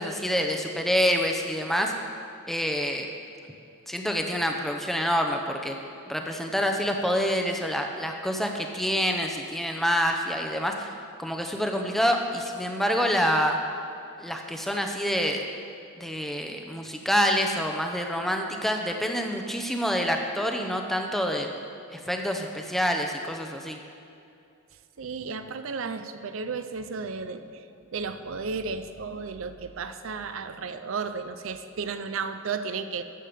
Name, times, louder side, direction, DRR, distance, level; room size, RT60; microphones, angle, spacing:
voice 1, 0.0-1.9 2.5-3.1 3.9-5.8 6.1-10.9 11.2-13.6 14.2-15.4 16.0-21.5 21.9-23.8, equal, ahead, 3 dB, 0.7 m, -27 dB
voice 2, 25.0-27.7 27.9-33.0, right 5 dB, 65° right, 10 dB, 0.5 m, -33 dB
13.0 x 7.5 x 5.1 m, 2.6 s
head